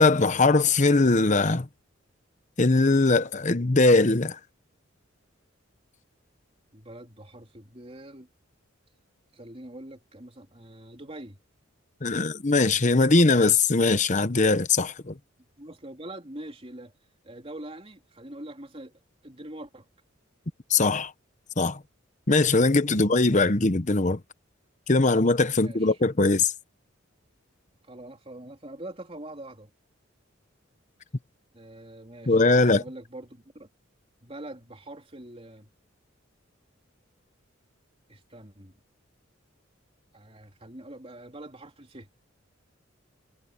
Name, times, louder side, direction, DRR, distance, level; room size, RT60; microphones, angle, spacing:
voice 1, 0.0-1.7 2.6-4.4 12.0-15.1 20.7-21.1 21.6-21.8 22.3-24.2 24.9-26.5 32.3-32.8, left 3 dB, 35° left, 1.0 m, -21 dB
voice 2, 6.7-8.3 9.3-11.4 15.6-16.9 17.2-19.9 22.9-23.5 25.5-26.0 27.8-29.7 31.5-33.7 34.2-35.7 38.1-38.8 40.1-42.1, right 1 dB, 30° right, 3.7 m, -44 dB
head